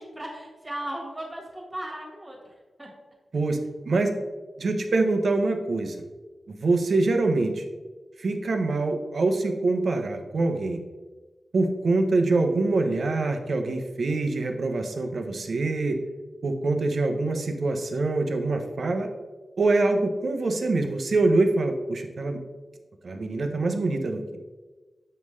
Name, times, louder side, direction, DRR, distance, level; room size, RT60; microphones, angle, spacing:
voice 1, 0.0-2.9, right 1 dB, 20° right, -1 dB, 1.7 m, -37 dB
voice 2, 4.6-6.0 6.6-7.6 8.2-10.8 11.5-16.0 16.4-19.1 19.6-22.4 23.0-24.4, right 3 dB, 60° right, 5 dB, 0.8 m, -24 dB
7.8 x 5.4 x 3.2 m, 1.3 s
wide cardioid pair, 145°, 0 cm